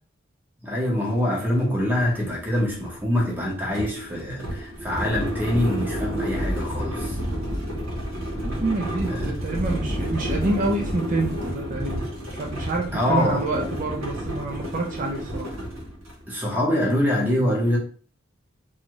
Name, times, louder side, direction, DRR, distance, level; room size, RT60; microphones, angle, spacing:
voice 1, 0.6-7.2 9.1-9.3 12.9-13.5 16.3-17.8, left 1 dB, 10° right, 0.7 m, -24 dB
sound 1, 1.1-1.2 1.5-16.2, equal, 85° right, 1.0 m, -30 dB
voice 2, 8.6-12.0 12.4-15.5, right 2 dB, 40° right, 0.4 m, -27 dB
2.6 x 2.3 x 3.0 m
head